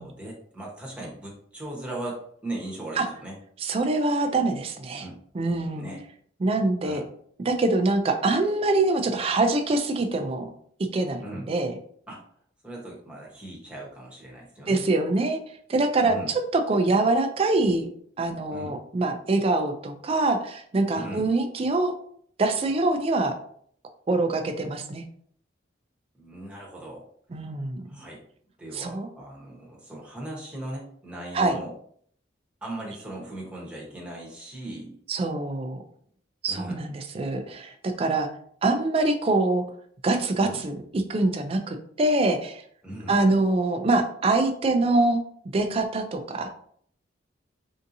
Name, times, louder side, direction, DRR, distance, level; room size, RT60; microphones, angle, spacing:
voice 1, 0.0-3.4 5.0-5.2 5.7-6.0 6.8-7.1 11.2-11.5 12.1-12.2 12.6-14.8 16.0-16.3 18.5-18.7 20.9-21.3 26.2-27.0 27.9-28.2 28.6-31.7 32.6-35.0 36.5-36.8 40.4-40.6 42.8-43.2, right 1 dB, 5° right, -4 dB, 0.9 m, -38 dB
voice 2, 3.6-5.1 5.3-5.9 6.4-7.0 7.4-10.5 10.9-11.7 14.7-15.4 15.7-17.9 18.2-21.9 22.4-23.3 24.1-25.0 27.3-27.8 28.7-29.1 31.3-31.6 35.1-35.8 36.4-38.3 38.6-39.6 40.0-42.6 43.1-45.2 45.5-46.5, right 2 dB, 30° right, 5 dB, 0.3 m, -24 dB
3.6 x 2.7 x 2.6 m, 0.62 s
head